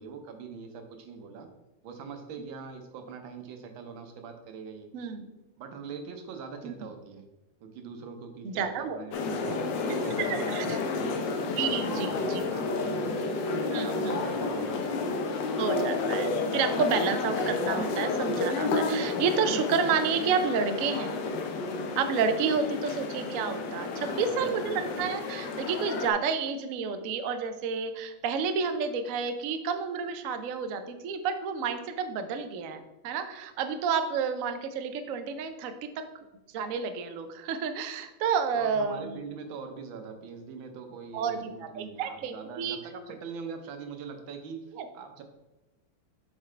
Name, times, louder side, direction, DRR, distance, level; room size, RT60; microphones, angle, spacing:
voice 1, 0.0-1.5 1.8-4.9 5.6-7.2 7.6-11.2 11.8-13.2 13.8-15.0 15.3-15.9 24.1-24.9 38.5-44.6 44.9-45.2, right 5 dB, 90° right, 6 dB, 1.6 m, -43 dB
voice 2, 4.9-5.3 6.6-6.7 8.4-9.0 10.2-10.8 11.5-12.4 13.7-14.2 15.6-21.2 22.0-36.1 36.5-39.2 41.1-42.8 44.8-44.9, right 6 dB, 75° right, 8 dB, 0.7 m, -30 dB
sound 1, 9.1-26.1, left 3 dB, 75° left, 1.4 m, -31 dB
7.5 x 4.7 x 3.2 m, 1.0 s
omnidirectional pair, 2.1 m